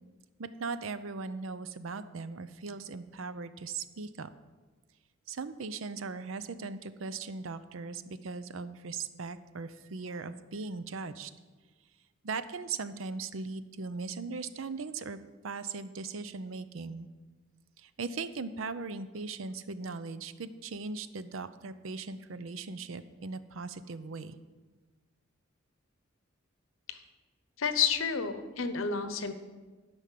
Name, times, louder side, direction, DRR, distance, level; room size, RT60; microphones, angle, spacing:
voice 1, 0.4-4.3 5.3-11.3 12.2-15.2 15.4-17.1 17.8-24.4, right 4 dB, 80° right, 13 dB, 0.6 m, -39 dB
voice 2, 27.6-29.3, left 6 dB, 85° left, 10 dB, 0.9 m, -30 dB
12.0 x 5.4 x 7.5 m, 1.3 s
head